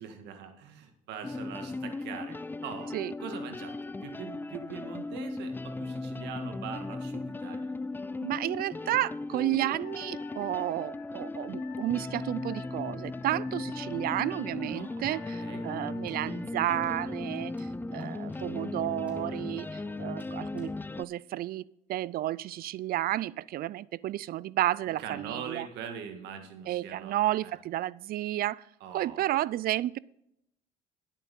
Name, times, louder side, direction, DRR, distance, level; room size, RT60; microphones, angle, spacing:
voice 1, 0.0-7.7 14.7-15.7 25.0-27.2 27.4-27.5 28.8-29.3, right 7 dB, 80° right, 7 dB, 1.8 m, -42 dB
sound 1, 1.2-21.0, left 2 dB, 10° left, 0.4 m, -37 dB
voice 2, 8.2-20.7 21.0-21.6 21.9-25.7 26.7-28.6 28.9-30.0, right 14 dB, 60° right, 23 dB, 0.4 m, -32 dB
Wind instrument woodwind instrument, 9.8-16.2, left 13 dB, 75° left, 0.7 m, -51 dB
sound 2, 16.1-17.1 17.6-18.7 19.1-20.8, right 1 dB, 5° right, 3.3 m, -55 dB
10.5 x 8.4 x 5.4 m, 0.77 s
supercardioid pair, 75°, 17 cm